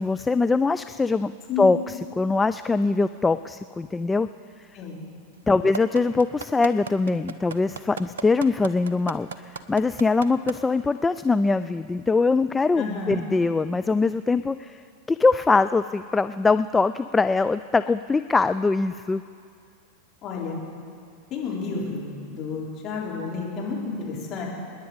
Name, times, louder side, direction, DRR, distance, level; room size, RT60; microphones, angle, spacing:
voice 1, 0.0-1.3 1.6-4.3 5.5-14.8 15.1-19.2, left 3 dB, 10° left, 11 dB, 0.3 m, -22 dB
sound 1, 5.7-10.5 11.0-11.1, right 5 dB, 65° right, 0.8 m, -33 dB
voice 2, 12.8-13.2 20.2-20.6 21.3-24.4, left 4 dB, 30° left, -5 dB, 4.9 m, -31 dB
26.5 x 10.5 x 5.1 m, 2.3 s
figure-of-eight pair, 90°, 0 cm